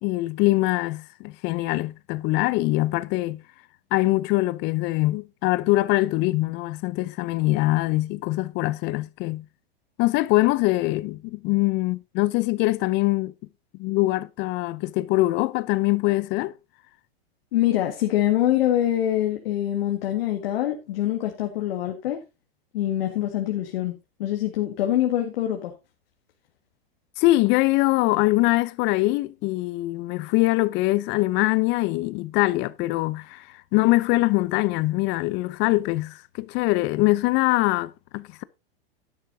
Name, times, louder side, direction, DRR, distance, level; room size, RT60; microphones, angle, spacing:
voice 1, 0.0-3.4 3.9-9.4 10.0-13.3 13.8-16.5 27.2-33.5 33.7-38.4, left 19 dB, 35° left, 0.7 m, -23 dB
voice 2, 17.5-22.2 22.7-23.9 24.2-25.7, left 12 dB, 70° left, 1.9 m, -24 dB
12.0 x 10.5 x 2.8 m
hypercardioid pair, 130°, 30 cm